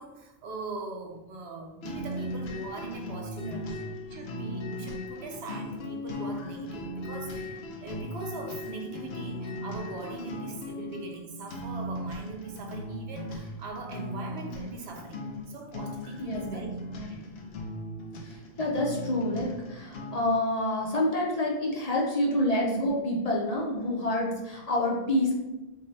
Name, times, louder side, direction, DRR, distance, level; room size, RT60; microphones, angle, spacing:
voice 1, 0.0-3.6 4.1-16.7 17.1-17.3, right 3 dB, 85° right, 2 dB, 0.9 m, -41 dB
sound 1, 1.8-20.4, left 1 dB, 80° left, 0.9 m, -38 dB
voice 2, 16.2-16.6 17.0-17.1 18.2-25.3, left 1 dB, 45° left, -3 dB, 0.7 m, -28 dB
3.4 x 2.3 x 4.0 m, 1.0 s
omnidirectional pair, 1.0 m